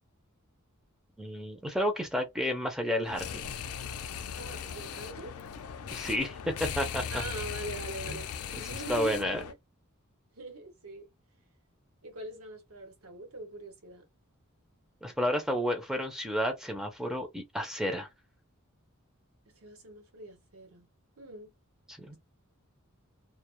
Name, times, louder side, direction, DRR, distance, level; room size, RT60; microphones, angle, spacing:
voice 1, 1.2-3.5 5.9-7.2 8.1-8.2 8.9-9.4 15.0-18.1 21.9-22.2, equal, 5° right, 0.4 m, -31 dB
sound 1, 3.0-9.5, left 7 dB, 85° left, 0.4 m, -38 dB
voice 2, 4.4-5.3 7.1-9.6 10.3-11.1 12.0-14.0 19.6-20.9 21.2-21.5, right 1 dB, 85° right, 0.9 m, -43 dB
2.1 x 2.0 x 2.9 m
head